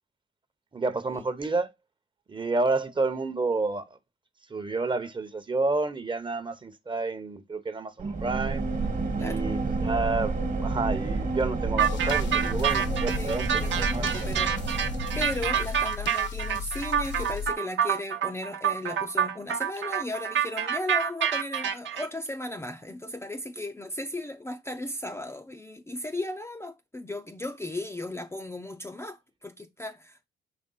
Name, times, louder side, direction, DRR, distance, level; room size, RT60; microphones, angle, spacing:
voice 1, 0.7-1.7 2.3-4.0 4.5-8.6 9.2-14.3, right 3 dB, 25° right, 0.9 m, -30 dB
sound 1, 8.0-15.8, right 3 dB, 40° right, 1.4 m, -30 dB
sound 2, 11.8-17.5, left 7 dB, 65° left, 0.9 m, -36 dB
sound 3, 11.8-22.1, right 8 dB, 65° right, 0.9 m, -27 dB
voice 2, 13.6-14.6 15.1-30.3, left 1 dB, 15° left, 0.5 m, -36 dB
5.1 x 3.4 x 5.5 m
cardioid pair, 90°, 20 cm